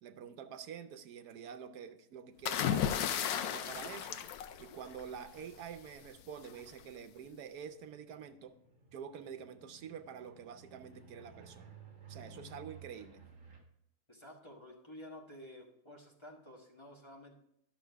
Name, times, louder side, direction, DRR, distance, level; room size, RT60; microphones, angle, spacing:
voice 1, 0.0-3.0 3.4-4.2 4.6-8.5 8.9-11.7 12.1-13.2, right 7 dB, 90° right, 9 dB, 1.3 m, -47 dB
sound 1, 2.4-5.2 6.4-6.7, left 9 dB, 75° left, 1.1 m, -34 dB
sound 2, 4.8-13.6, right 5 dB, 55° right, 2.2 m, -57 dB
voice 2, 14.1-17.4, left 1 dB, 20° left, -1 dB, 1.5 m, -52 dB
11.5 x 6.5 x 3.5 m, 0.78 s
omnidirectional pair, 1.6 m